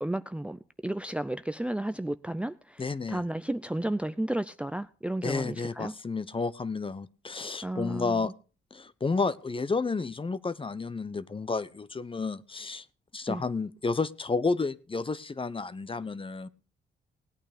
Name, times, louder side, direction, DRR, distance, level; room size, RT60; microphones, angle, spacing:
voice 1, 0.0-5.9 7.6-8.3 13.3-13.4, right 1 dB, 5° right, 0.5 m, -33 dB
voice 2, 2.8-3.3 5.2-8.3 8.7-12.8 13.1-16.5, left 4 dB, 25° left, 0.8 m, -31 dB
18.0 x 8.8 x 5.1 m
supercardioid pair, 60°, 20 cm